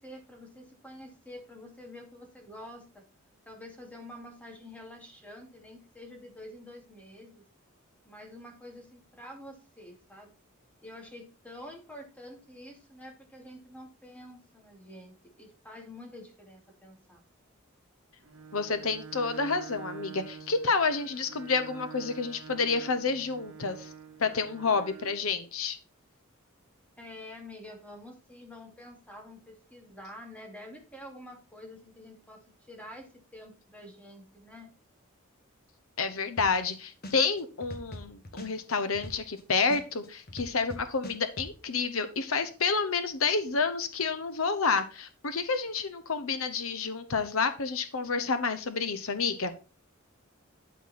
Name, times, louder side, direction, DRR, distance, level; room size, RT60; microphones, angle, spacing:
voice 1, 0.0-3.1 3.5-7.4 8.1-10.3 10.8-17.2 27.0-34.7, left 1 dB, 5° left, 2 dB, 2.4 m, -48 dB
Bowed string instrument, 18.2-25.3, right 6 dB, 80° right, 1.6 m, -46 dB
voice 2, 18.5-23.9 24.2-25.8 36.0-49.5, left 4 dB, 80° left, 10 dB, 0.9 m, -29 dB
sound 1, 36.4-36.7 37.0-39.4 39.7-41.5, left 1 dB, 45° left, 1.6 m, -41 dB
12.0 x 4.7 x 4.2 m, 0.34 s
head